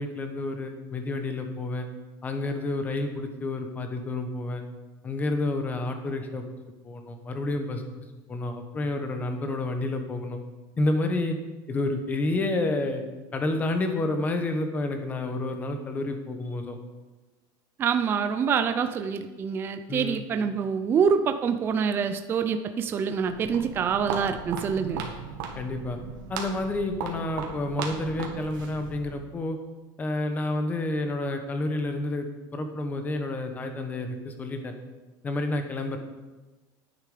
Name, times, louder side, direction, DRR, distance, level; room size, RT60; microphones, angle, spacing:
voice 1, 0.0-1.9 2.2-4.6 5.0-6.4 6.8-10.4 10.8-11.4 11.7-13.0 13.3-16.8 19.9-20.2 25.5-26.0 26.3-29.6 30.0-34.7 35.2-36.0, left 2 dB, 15° left, 6 dB, 1.0 m, -29 dB
voice 2, 17.8-25.0, right 6 dB, 20° right, 8 dB, 0.4 m, -26 dB
Walk footsteps, 23.1-29.2, right 6 dB, 85° right, 1.8 m, -37 dB
10.0 x 9.2 x 5.0 m, 1.2 s
cardioid pair, 170°, 11 cm